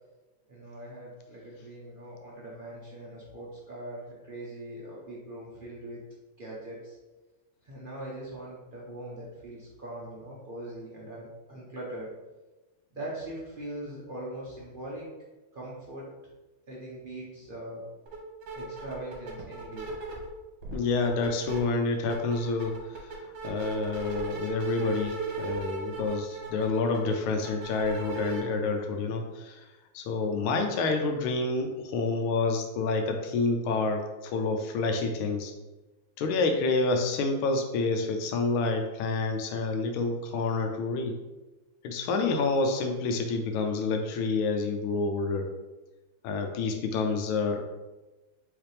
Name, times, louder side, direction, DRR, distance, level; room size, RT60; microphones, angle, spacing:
voice 1, 0.5-6.1 6.4-7.0 7.6-12.1 12.9-15.1 15.5-16.1 16.7-17.9 18.5-19.9, right 1 dB, 60° right, -6 dB, 0.5 m, -41 dB
sound 1, 18.1-18.2 18.4-20.3 20.6-21.6 21.9-28.4, right 3 dB, 75° right, 1.8 m, -36 dB
voice 2, 20.7-29.7 29.9-35.5 36.2-41.1 41.8-45.5 46.2-47.6, left 3 dB, 90° left, 5 dB, 1.4 m, -28 dB
4.9 x 3.2 x 3.2 m, 1.1 s
omnidirectional pair, 2.2 m